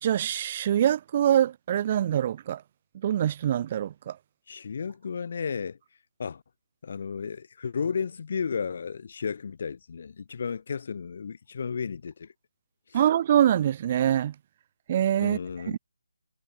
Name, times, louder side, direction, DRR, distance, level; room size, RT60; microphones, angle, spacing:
voice 1, 0.0-2.6 3.0-4.2 12.9-14.3 14.9-15.4, right 10 dB, 20° right, 1.3 m, -24 dB
voice 2, 4.5-5.8 6.2-6.4 6.8-12.3 12.9-13.0 15.2-15.8, left 6 dB, 35° left, 2.7 m, -33 dB
hypercardioid pair, 180°, 0 cm